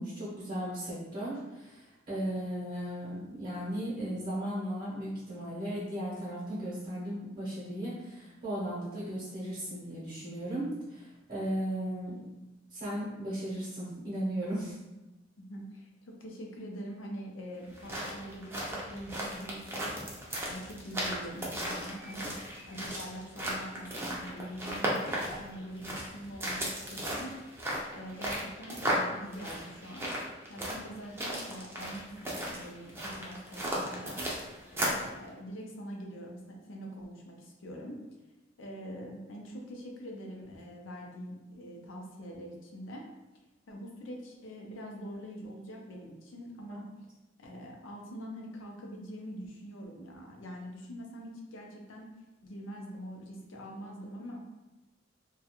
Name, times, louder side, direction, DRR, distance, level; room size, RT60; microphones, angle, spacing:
voice 1, 0.0-12.2 12.7-14.8 46.7-46.8, right 1 dB, 45° right, -8 dB, 0.7 m, -36 dB
voice 2, 15.5-15.9 16.2-19.9 20.4-22.3 22.7-27.3 27.9-30.1 30.5-34.3 34.7-38.0 38.6-43.1 43.7-46.8 47.4-52.1 52.4-54.6, equal, 80° left, 0 dB, 0.5 m, -44 dB
sound 1, 17.6-35.1, equal, 15° right, 0.4 m, -36 dB
2.3 x 2.3 x 2.8 m, 1.0 s
head